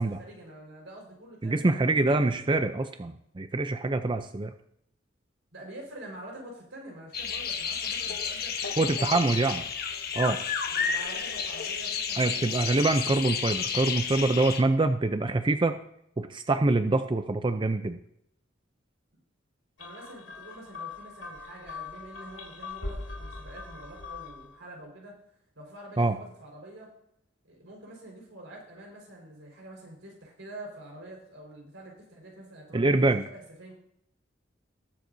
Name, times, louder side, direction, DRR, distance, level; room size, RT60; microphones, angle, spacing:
voice 1, 0.0-2.4 5.5-9.6 10.7-12.7 19.8-25.2 25.5-26.9 27.4-33.7, right 1 dB, 85° right, -1 dB, 4.7 m, -46 dB
voice 2, 1.4-4.5 8.8-9.6 10.2-10.4 12.2-15.7 16.2-18.0 26.0-26.2 32.7-33.2, right 2 dB, 25° right, 8 dB, 0.5 m, -25 dB
sound 1, 7.1-14.6, left 6 dB, 55° left, 1.1 m, -31 dB
sound 2, 19.8-24.5, left 3 dB, 75° left, 2.6 m, -41 dB
20.0 x 7.8 x 2.7 m, 0.74 s
head